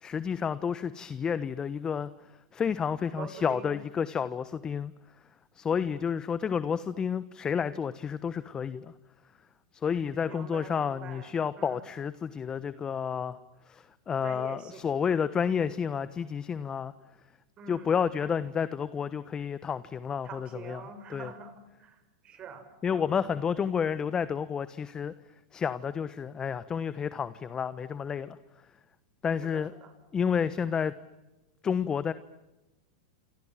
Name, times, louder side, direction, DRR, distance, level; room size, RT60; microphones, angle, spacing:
voice 1, 0.0-2.1 2.5-4.9 5.5-8.9 9.7-13.4 13.7-16.9 17.7-20.8 21.1-21.3 22.8-25.1 25.5-28.4 29.2-29.7 30.1-30.9 31.6-32.1, left 7 dB, 25° left, 15 dB, 1.2 m, -30 dB
voice 2, 3.1-3.8 10.2-11.8 14.2-14.9 17.6-18.4 20.2-22.6 22.9-23.1 29.5-29.9, right 5 dB, 35° right, 8 dB, 6.5 m, -46 dB
28.5 x 27.5 x 7.6 m, 1.0 s
hypercardioid pair, 110°, 3 cm